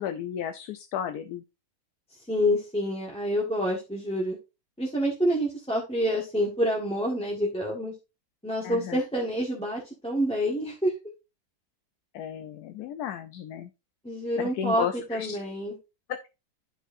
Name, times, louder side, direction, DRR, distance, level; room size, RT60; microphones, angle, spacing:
voice 1, 0.0-1.4 8.6-9.0 12.1-13.7 14.4-15.4 16.1-16.3, left 9 dB, 70° left, 9 dB, 1.0 m, -33 dB
voice 2, 2.3-4.4 4.8-7.9 8.4-10.9 14.0-15.7, equal, 5° left, -4 dB, 1.2 m, -27 dB
11.0 x 4.6 x 2.6 m, 0.27 s
omnidirectional pair, 1.8 m